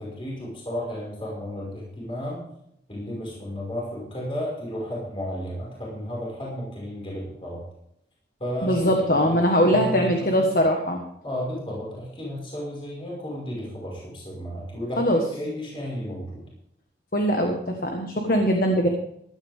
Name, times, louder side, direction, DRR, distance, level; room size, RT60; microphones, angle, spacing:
voice 1, 0.0-2.4 2.9-7.6 8.4-8.9 9.2-10.5 11.2-16.4, equal, 30° left, -4 dB, 5.4 m, -33 dB
voice 2, 8.6-11.0 15.0-15.2 17.1-18.9, equal, 50° left, 2 dB, 1.5 m, -21 dB
15.5 x 12.0 x 3.6 m, 0.74 s
head